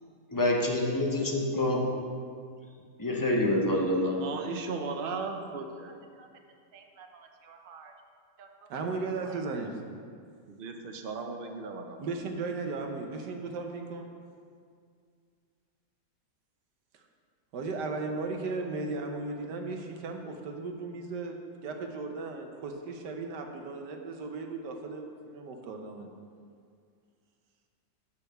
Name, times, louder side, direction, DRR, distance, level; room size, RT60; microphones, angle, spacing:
voice 1, 0.3-1.8 3.0-4.3, left 1 dB, 20° left, -1 dB, 0.6 m, -27 dB
voice 2, 4.2-5.9 6.2-6.3 6.7-7.9 8.4-8.7 9.2-9.4 10.5-12.1, right 4 dB, 55° right, 4 dB, 0.6 m, -38 dB
voice 3, 8.7-9.7 12.0-14.1 17.5-26.1, right 3 dB, 80° right, 3 dB, 1.4 m, -36 dB
6.5 x 5.7 x 6.5 m, 2.2 s
omnidirectional pair, 1.8 m